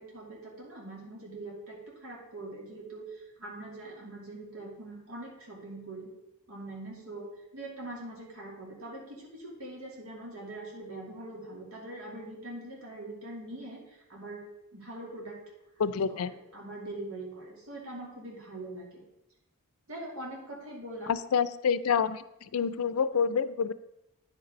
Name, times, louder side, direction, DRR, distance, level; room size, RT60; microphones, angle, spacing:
voice 1, 0.0-6.1 6.5-7.3 7.5-15.4 15.9-19.0 19.9-21.1, right 2 dB, 75° right, -3 dB, 2.7 m, -43 dB
voice 2, 15.8-16.3 21.1-22.2 22.5-23.7, left 6 dB, 90° left, 15 dB, 0.4 m, -27 dB
9.4 x 5.2 x 5.2 m, 0.91 s
head